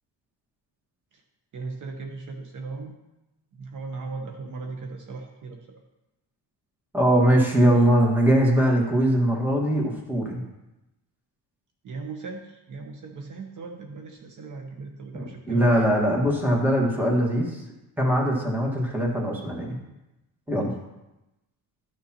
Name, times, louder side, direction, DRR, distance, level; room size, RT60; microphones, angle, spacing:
voice 1, 1.5-3.0 3.6-5.8 11.8-15.9, right 4 dB, 50° right, 3 dB, 0.9 m, -37 dB
voice 2, 6.9-10.4 15.1-17.6 18.0-19.8 20.5-20.7, equal, 5° right, -1 dB, 1.6 m, -21 dB
12.5 x 6.6 x 2.9 m, 0.98 s
cardioid pair, 140°, 39 cm